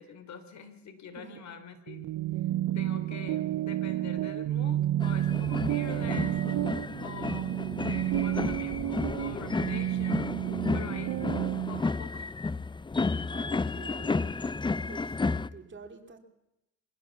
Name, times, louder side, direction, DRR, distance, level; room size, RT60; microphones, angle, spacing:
voice 1, 0.0-2.0 2.7-6.4 7.0-10.4 10.7-11.2 11.7-12.3, left 6 dB, 65° left, 10 dB, 3.5 m, -45 dB
sound 1, 1.9-11.8, right 13 dB, 70° right, 0.6 m, -30 dB
sound 2, 5.0-15.5, left 3 dB, 15° left, 0.6 m, -32 dB
voice 2, 13.3-14.4 14.9-16.2, right 5 dB, 40° right, 5 dB, 3.0 m, -48 dB
23.5 x 15.5 x 7.2 m, 0.89 s
cardioid pair, 90°, 30 cm